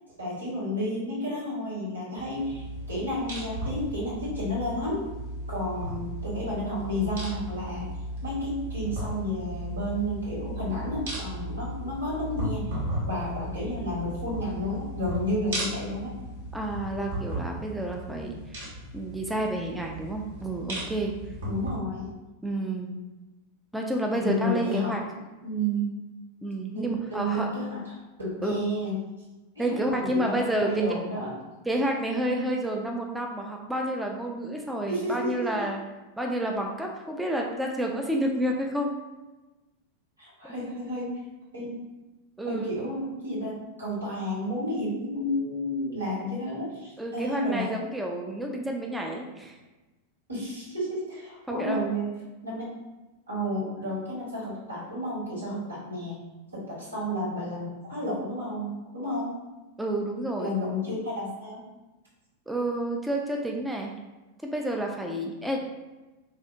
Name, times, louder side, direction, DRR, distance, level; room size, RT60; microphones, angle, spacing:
voice 1, 0.2-5.0 5.5-7.9 8.2-12.8 13.0-16.2 21.4-22.1 24.2-24.9 25.4-25.9 26.7-28.9 29.5-31.3 34.9-35.7 40.2-41.2 41.5-41.8 42.4-47.7 50.3-52.1 52.4-52.6 53.3-56.2 56.5-59.3 60.4-61.6, equal, 80° right, -7 dB, 1.3 m, -31 dB
sound 1, 2.2-21.8, right 1 dB, 60° right, 0.9 m, -36 dB
voice 2, 16.5-18.4 18.9-21.1 22.4-22.9 23.7-25.0 26.4-27.5 28.4-28.5 29.6-30.8 31.7-35.8 36.2-38.9 40.4-40.5 42.4-42.7 47.0-49.5 51.5-51.8 59.8-60.5 62.5-63.9 64.4-65.6, right 1 dB, 5° right, 0 dB, 0.3 m, -29 dB
3.3 x 2.4 x 2.4 m, 1.1 s
figure-of-eight pair, 90°, 0 cm